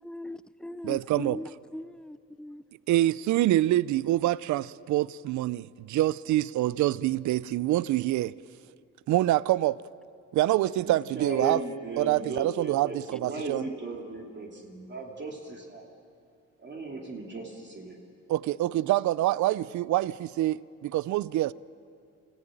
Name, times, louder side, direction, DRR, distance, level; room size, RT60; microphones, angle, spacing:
voice 1, 0.0-2.6, left 1 dB, 5° left, 0.5 m, -39 dB
voice 2, 0.9-1.4 2.9-8.3 9.1-9.8 10.3-11.6 12.0-13.7 18.3-21.5, right 15 dB, 70° right, 0.5 m, -26 dB
voice 3, 10.8-15.8 16.6-18.0, right 2 dB, 35° right, 2.9 m, -37 dB
28.5 x 15.0 x 8.9 m
cardioid pair, 90°, 30 cm